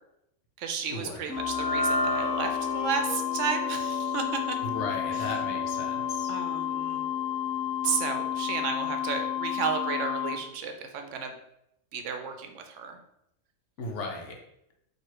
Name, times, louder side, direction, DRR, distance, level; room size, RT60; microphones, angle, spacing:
voice 1, 0.6-4.6 5.1-5.3 6.3-7.0 7.8-11.3 11.9-13.0, right 6 dB, 75° right, 5 dB, 0.9 m, -33 dB
sound 1, 1.3-7.7, equal, 45° left, 1.2 m, -35 dB
sound 2, 1.3-10.3, left 10 dB, 20° left, 0.4 m, -31 dB
voice 2, 4.6-6.3 13.8-14.4, left 3 dB, 70° left, 1 dB, 1.1 m, -36 dB
3.1 x 2.8 x 4.6 m, 0.81 s
omnidirectional pair, 1.3 m